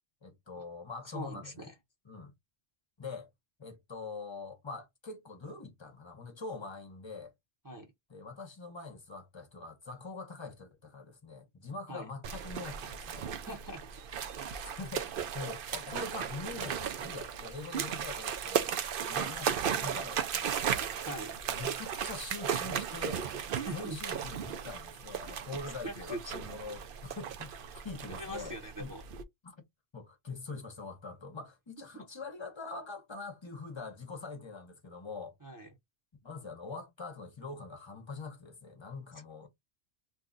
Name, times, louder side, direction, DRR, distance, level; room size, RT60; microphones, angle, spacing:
voice 1, 0.2-1.8 2.0-2.3 3.0-3.3 3.6-7.3 8.1-13.3 14.6-18.7 19.0-20.8 21.5-23.3 23.7-28.9 29.4-29.5 29.9-35.3 36.2-39.5, left 3 dB, 30° left, 0.8 m, -44 dB
voice 2, 1.1-1.7 7.6-7.9 11.9-12.0 13.5-13.9 21.0-21.4 23.5-24.0 25.8-26.3 28.2-29.0 31.9-32.0 35.4-35.7, right 1 dB, 20° right, 0.7 m, -41 dB
sound 1, 12.2-29.2, right 8 dB, 60° right, 0.7 m, -36 dB
2.7 x 2.3 x 3.7 m
omnidirectional pair, 1.1 m